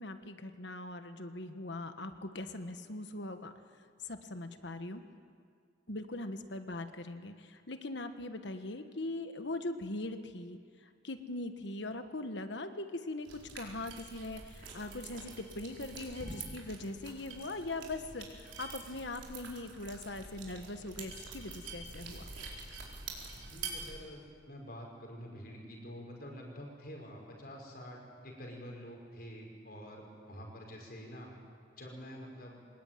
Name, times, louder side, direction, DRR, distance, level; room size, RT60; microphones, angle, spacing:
voice 1, 0.0-3.5 4.0-5.0 5.9-10.6 11.0-22.2, left 2 dB, 65° left, 8 dB, 1.4 m, -41 dB
sound 1, 13.2-23.9, right 4 dB, 70° right, 4.6 m, -46 dB
voice 2, 23.5-31.3 31.8-32.6, equal, 50° left, 0 dB, 5.7 m, -47 dB
25.0 x 20.5 x 9.2 m, 2.1 s
head